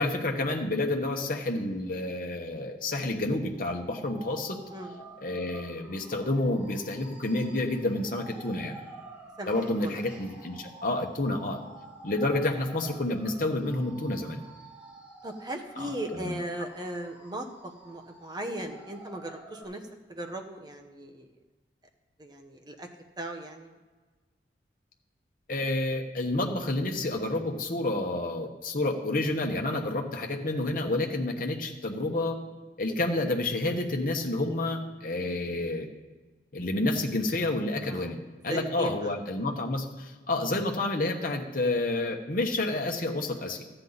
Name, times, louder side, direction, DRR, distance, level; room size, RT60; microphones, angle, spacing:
voice 1, 0.0-4.6 5.2-8.8 9.5-11.6 12.0-14.4 15.8-16.3 25.5-32.4 32.8-35.9 36.5-38.2 38.4-43.6, left 2 dB, 50° left, 3 dB, 1.1 m, -29 dB
sound 1, 3.5-19.6, right 2 dB, 5° right, 2.2 m, -50 dB
voice 2, 4.7-5.1 9.4-9.5 9.8-10.0 15.2-17.5 17.8-19.8 20.1-21.3 22.2-22.9 23.2-23.7 37.9-38.1 38.5-39.1, right 1 dB, 25° right, 3 dB, 1.0 m, -37 dB
13.5 x 8.9 x 4.1 m, 1.3 s
head